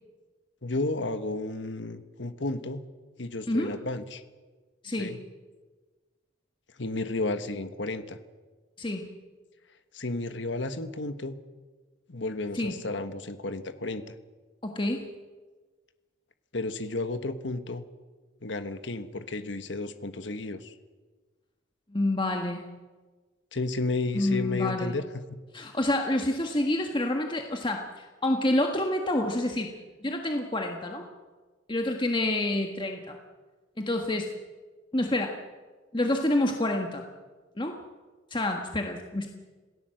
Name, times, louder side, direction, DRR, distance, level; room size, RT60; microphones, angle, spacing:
voice 1, 0.6-2.8 3.2-4.2 5.0-5.2 6.8-8.2 9.9-11.4 12.1-14.0 16.5-17.8 18.4-20.7 23.5-25.4, left 2 dB, 65° left, 10 dB, 1.3 m, -32 dB
voice 2, 4.8-5.1 8.8-9.0 12.5-12.8 14.6-15.1 21.9-22.7 24.1-24.9 25.5-29.7 30.0-31.0 31.7-33.2 33.8-34.3 34.9-35.4 35.9-37.1 37.6-37.7 38.3-39.3, left 1 dB, 25° left, 3 dB, 1.6 m, -28 dB
26.5 x 17.5 x 7.8 m, 1.4 s
head